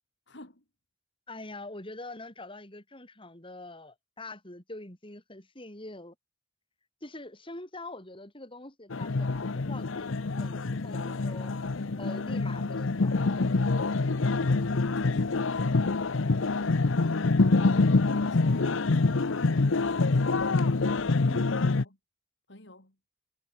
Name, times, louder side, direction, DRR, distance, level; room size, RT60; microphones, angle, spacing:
voice 1, 0.3-0.6 14.5-15.7 17.5-20.8 21.6-22.0 22.5-23.0, left 1 dB, 65° left, 5.4 m, -51 dB
voice 2, 1.3-6.1 7.0-11.5 12.0-13.4 21.2-21.6, left 2 dB, 25° left, 5.7 m, -44 dB
sound 1, 8.9-21.8, left 3 dB, 85° left, 0.8 m, -26 dB
head